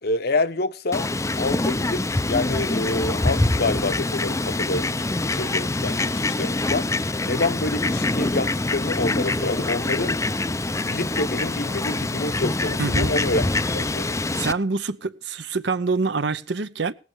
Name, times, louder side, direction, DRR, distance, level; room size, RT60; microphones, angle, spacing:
voice 1, 0.0-1.1 1.3-10.2 10.8-13.4 13.7-14.2, left 2 dB, 55° left, 0.9 m, -27 dB
Fowl, 0.9-14.5, left 2 dB, 15° left, 0.5 m, -25 dB
voice 2, 12.8-13.1 14.4-16.9, right 4 dB, 65° right, 0.8 m, -25 dB
18.5 x 8.2 x 4.7 m
head